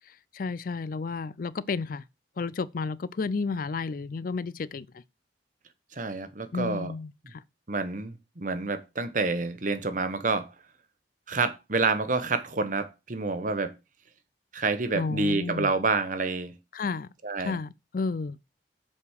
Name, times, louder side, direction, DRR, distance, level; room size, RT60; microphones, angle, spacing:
voice 1, 0.3-2.0 2.4-4.9 6.5-7.4 14.9-15.7 16.7-17.1 17.4-18.4, left 4 dB, 50° left, 0.4 m, -32 dB
voice 2, 5.9-6.9 7.7-10.5 11.3-13.7 14.5-16.5 17.2-17.6, right 3 dB, 45° right, 1.0 m, -28 dB
7.3 x 5.0 x 6.4 m
head